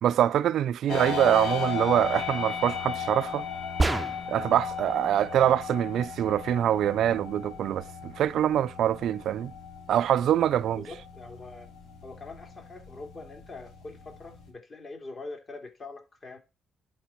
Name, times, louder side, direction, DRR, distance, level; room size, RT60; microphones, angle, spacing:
voice 1, 0.0-3.4 4.3-9.5 9.9-10.8, right 11 dB, 75° right, 0.4 m, -24 dB
sound 1, 0.9-14.5, left 6 dB, 90° left, 2.6 m, -36 dB
sound 2, 3.8-4.5, right 2 dB, 20° right, 0.5 m, -27 dB
voice 2, 10.7-11.7 12.0-16.4, left 3 dB, 40° left, 2.9 m, -43 dB
11.0 x 3.9 x 4.4 m
cardioid pair, 90°, 0 cm